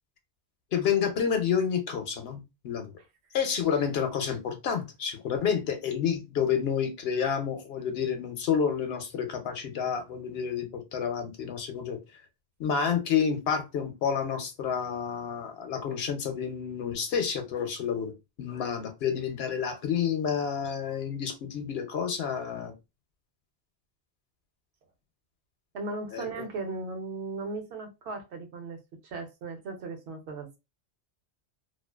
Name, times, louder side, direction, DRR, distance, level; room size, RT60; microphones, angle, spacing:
voice 1, 0.7-2.9 3.3-12.0 12.6-18.1 18.4-22.7 26.1-26.3, left 7 dB, 70° left, 0.8 m, -29 dB
voice 2, 25.7-30.6, right 3 dB, 75° right, 0.9 m, -37 dB
2.4 x 2.3 x 2.2 m
omnidirectional pair, 1.1 m